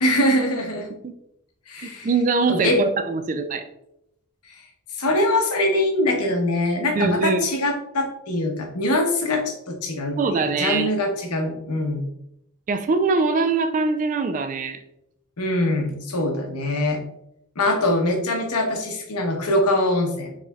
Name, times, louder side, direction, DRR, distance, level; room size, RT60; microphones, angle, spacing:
voice 1, 0.0-0.9 1.7-2.1 2.5-2.8 4.9-12.1 15.4-17.0 17.6-20.3, left 1 dB, 85° left, 3 dB, 1.0 m, -23 dB
voice 2, 1.8-3.6 7.0-7.5 10.2-10.9 12.7-14.8, right 4 dB, 35° right, 8 dB, 0.3 m, -22 dB
4.9 x 4.0 x 2.3 m, 0.78 s
head